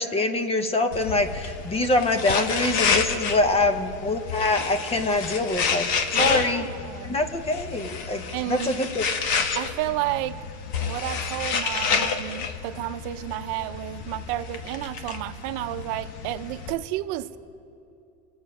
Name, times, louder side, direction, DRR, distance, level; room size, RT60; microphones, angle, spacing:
voice 1, 0.0-5.9 6.2-6.7 7.0-9.0, left 2 dB, 20° left, 8 dB, 0.7 m, -24 dB
sound 1, 0.9-16.7, left 5 dB, 60° left, 1.2 m, -29 dB
voice 2, 6.1-7.2 8.3-8.7 9.6-10.4 10.8-17.4, right 15 dB, 65° right, 10 dB, 0.7 m, -31 dB
25.5 x 8.7 x 5.5 m, 2.7 s
cardioid pair, 155°, 33 cm